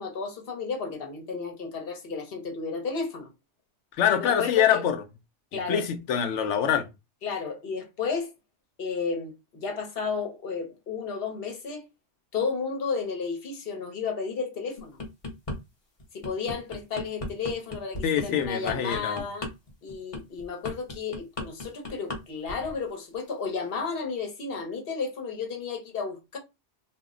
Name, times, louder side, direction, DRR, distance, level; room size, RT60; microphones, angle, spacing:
voice 1, 0.0-3.3 4.1-4.8 5.5-5.8 7.2-8.3 8.8-11.8 12.3-15.0 16.1-19.5 19.8-26.4, left 5 dB, 60° left, 1.0 m, -32 dB
voice 2, 4.0-5.0 5.5-6.9 18.0-19.2, left 8 dB, 90° left, 0.9 m, -25 dB
sound 1, 14.8-15.6 16.0-22.2 22.5-22.8, left 2 dB, 35° left, 0.7 m, -35 dB
2.4 x 2.0 x 3.6 m
omnidirectional pair, 1.2 m